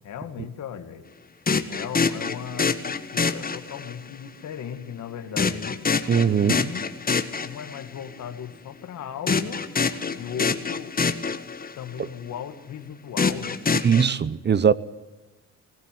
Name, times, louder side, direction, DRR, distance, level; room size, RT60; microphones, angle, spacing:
voice 1, 0.0-1.0 1.7-5.8 6.3-6.9 7.4-9.6 10.1-11.2 11.8-13.6, left 8 dB, 70° left, 2.3 m, -37 dB
sound 1, 1.5-4.1 5.4-8.0 9.3-11.9 13.2-14.0, left 5 dB, 30° left, 1.5 m, -26 dB
voice 2, 6.1-6.5 13.8-14.7, right 7 dB, 35° right, 0.8 m, -20 dB
20.0 x 16.5 x 9.4 m
cardioid pair, 90°, 30 cm